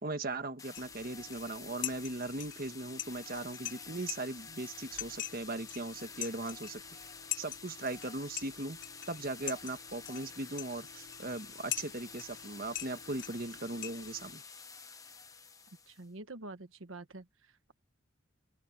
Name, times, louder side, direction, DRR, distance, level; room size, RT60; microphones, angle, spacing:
voice 1, 0.0-6.8 7.4-8.8 9.1-14.4, right 2 dB, 45° right, 1.4 m, -39 dB
sound 1, 0.6-16.1, left 5 dB, 15° left, 1.0 m, -50 dB
sound 2, 0.7-14.3, left 12 dB, 65° left, 3.0 m, -44 dB
voice 2, 15.9-17.7, right 2 dB, 85° right, 1.4 m, -47 dB
head